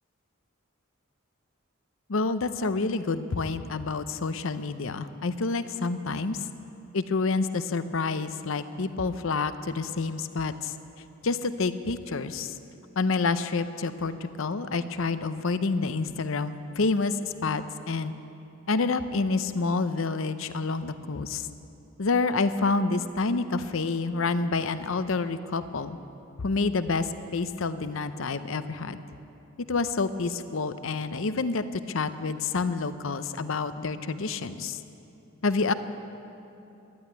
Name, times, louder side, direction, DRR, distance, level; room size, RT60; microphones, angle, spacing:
voice 1, 2.1-6.5 6.9-10.7 11.2-12.5 13.0-18.1 18.7-21.5 22.0-26.0 26.4-29.0 29.7-34.8 35.4-35.7, left 3 dB, 65° left, 12 dB, 0.7 m, -28 dB
12.5 x 11.0 x 9.6 m, 2.8 s
head